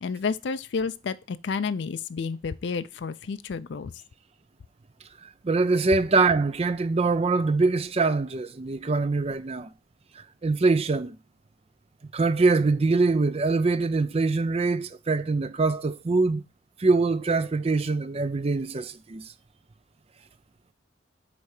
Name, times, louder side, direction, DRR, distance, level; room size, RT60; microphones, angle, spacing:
voice 1, 0.0-3.9, left 5 dB, 65° left, 0.4 m, -30 dB
voice 2, 5.4-9.7 10.2-11.2 12.1-16.4 16.8-19.2, right 3 dB, 30° right, 0.4 m, -24 dB
8.2 x 3.3 x 4.7 m
head